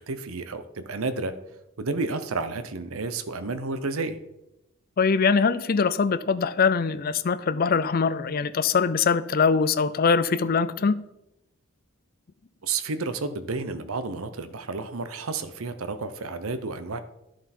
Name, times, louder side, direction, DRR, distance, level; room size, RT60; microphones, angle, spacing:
voice 1, 0.0-1.3 1.8-4.2 12.6-17.0, right 3 dB, 75° right, 0.8 m, -31 dB
voice 2, 5.0-11.0, left 5 dB, 45° left, 0.5 m, -22 dB
11.0 x 7.4 x 4.3 m
head